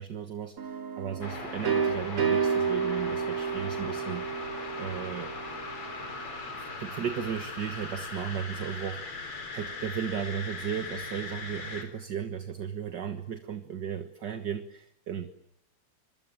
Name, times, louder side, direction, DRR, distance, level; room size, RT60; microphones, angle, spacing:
voice 1, 0.0-4.4 4.8-5.3 6.5-15.3, right 8 dB, 55° right, 9 dB, 1.8 m, -35 dB
sound 1, 0.6-6.3, right 6 dB, 90° right, 3.6 m, -31 dB
sound 2, 1.2-11.8, left 3 dB, 85° left, 5.3 m, -39 dB
26.0 x 23.5 x 8.9 m, 0.76 s
omnidirectional pair, 2.4 m